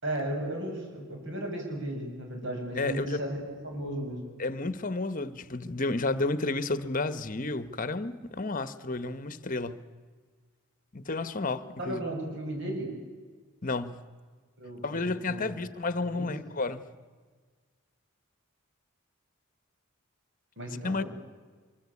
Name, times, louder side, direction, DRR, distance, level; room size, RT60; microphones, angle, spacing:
voice 1, 0.0-3.4 3.6-4.2 11.8-12.9 14.6-15.7 16.0-16.3 20.6-21.1, right 1 dB, 55° right, 7.1 m, -35 dB
voice 2, 2.8-3.2 4.4-9.8 10.9-12.0 13.6-14.0 14.8-16.8 20.8-21.0, left 3 dB, 40° left, 1.1 m, -31 dB
24.5 x 24.5 x 8.5 m
head